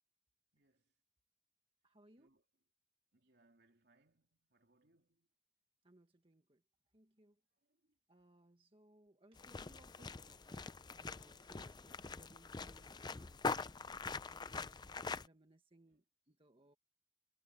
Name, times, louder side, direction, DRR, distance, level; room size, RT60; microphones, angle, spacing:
voice 1, 0.5-0.9 2.2-2.4 3.1-5.3 7.6-8.0 15.9-16.0, right 2 dB, 60° right, 3.3 m, -75 dB
voice 2, 1.8-2.3 5.8-6.6 6.9-7.4 8.1-16.8, right 1 dB, 30° right, 1.6 m, -67 dB
sound 1, 9.4-15.3, left 4 dB, 25° left, 0.5 m, -44 dB
head